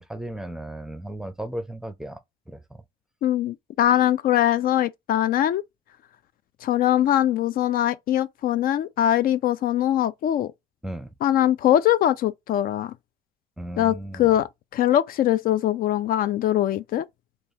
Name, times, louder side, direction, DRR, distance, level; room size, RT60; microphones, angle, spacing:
voice 1, 0.0-2.2 2.5-2.8 10.8-11.1 13.6-14.3, right 1 dB, 5° right, 0.6 m, -35 dB
voice 2, 3.2-5.6 6.6-10.5 11.2-12.9 13.8-17.1, left 12 dB, 60° left, 0.4 m, -22 dB
3.3 x 3.0 x 2.7 m
cardioid pair, 110°, 17 cm